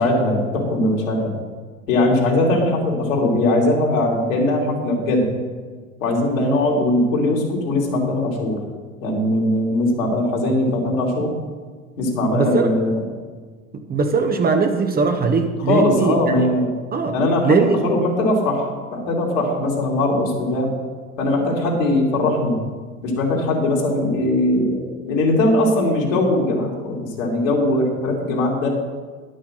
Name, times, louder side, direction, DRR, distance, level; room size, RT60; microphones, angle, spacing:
voice 1, 0.0-1.3 1.9-5.3 6.0-8.6 9.0-11.3 12.0-13.0 15.6-16.7 17.1-20.8 21.2-22.6 23.0-28.7, left 1 dB, 65° left, -2 dB, 3.1 m, -20 dB
voice 2, 12.3-12.7 13.7-16.5 16.9-17.1 17.4-17.8, right 4 dB, 20° right, 5 dB, 0.9 m, -20 dB
11.5 x 6.4 x 6.3 m, 1.5 s
figure-of-eight pair, 75°, 42 cm